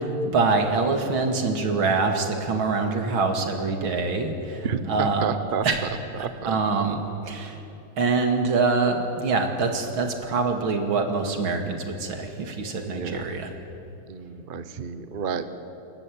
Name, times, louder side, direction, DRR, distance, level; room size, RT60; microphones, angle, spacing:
voice 1, 0.0-5.3 5.6-5.8 6.5-7.0 7.3-7.6 8.0-13.5, right 4 dB, 70° right, 5 dB, 2.9 m, -25 dB
voice 2, 4.6-5.7 6.2-6.8 12.9-13.3 14.1-15.4, right 6 dB, 45° right, 11 dB, 0.7 m, -31 dB
28.0 x 14.0 x 8.5 m, 3.0 s
omnidirectional pair, 2.3 m